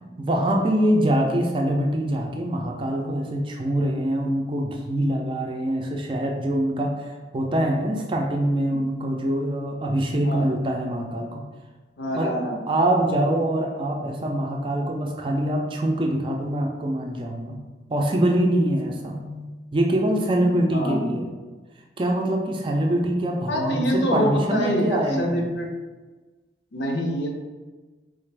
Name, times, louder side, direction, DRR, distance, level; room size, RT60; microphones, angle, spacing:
voice 1, 0.0-11.4 12.1-12.3 12.7-17.6 17.9-21.3 22.0-25.5, right 1 dB, 30° right, 1 dB, 0.4 m, -24 dB
voice 2, 12.0-12.6 20.7-21.0 23.5-25.7 26.7-27.4, equal, 75° left, 1 dB, 0.6 m, -25 dB
3.8 x 2.4 x 3.3 m, 1.3 s
head